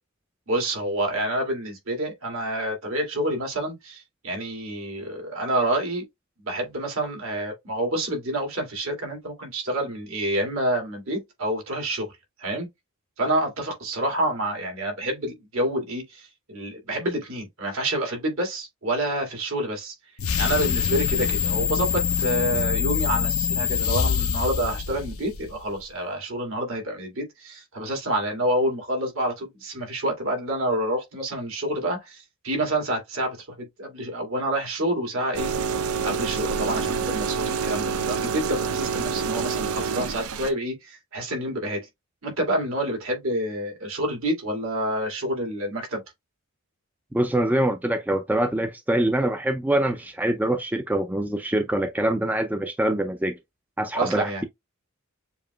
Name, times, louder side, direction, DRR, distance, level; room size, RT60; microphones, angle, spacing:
voice 1, 0.5-6.0 6.4-12.1 12.4-12.7 13.2-19.9 20.4-35.5 36.0-41.8 42.2-46.0 53.9-54.4, right 1 dB, 70° right, 2.1 m, -28 dB
sound 1, 20.2-25.6, left 7 dB, 70° left, 0.5 m, -25 dB
sound 2, 35.3-40.5, right 5 dB, 90° right, 0.6 m, -27 dB
voice 2, 47.1-53.3 53.8-54.4, right 1 dB, 10° right, 0.3 m, -24 dB
7.0 x 2.8 x 2.2 m
head